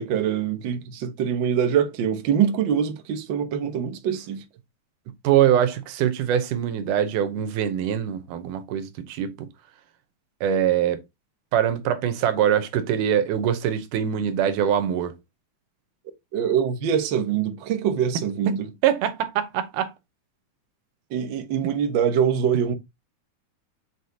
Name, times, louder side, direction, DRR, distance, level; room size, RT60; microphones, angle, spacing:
voice 1, 0.0-4.4 16.3-18.7 21.1-22.7, right 8 dB, 65° right, 1.1 m, -24 dB
voice 2, 5.2-9.5 10.4-11.0 11.5-15.1 18.8-19.9 21.6-21.7, right 9 dB, 85° right, 2.4 m, -23 dB
8.0 x 4.4 x 2.8 m
omnidirectional pair, 3.5 m